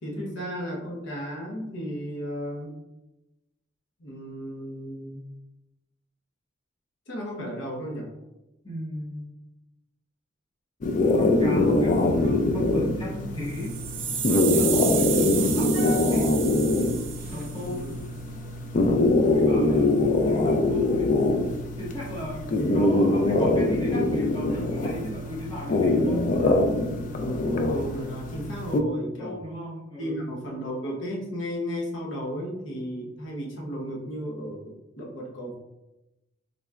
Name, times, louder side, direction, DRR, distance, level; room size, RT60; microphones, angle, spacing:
voice 1, 0.0-2.8 4.0-5.3 7.1-8.1 17.5-18.0 22.6-23.5 27.2-29.5 30.0-35.5, equal, 75° left, -2 dB, 0.8 m, -34 dB
voice 2, 8.6-9.2 11.1-13.8 14.5-16.4 17.3-17.9 18.7-18.9 19.2-21.2 21.8-26.3 27.7-27.8 29.2-30.3, equal, 25° left, -5 dB, 1.0 m, -35 dB
sound 1, 10.8-28.8, left 2 dB, 40° left, 0.3 m, -23 dB
sound 2, 13.5-17.7, right 8 dB, 75° right, 0.5 m, -31 dB
3.8 x 3.2 x 2.3 m, 0.95 s
head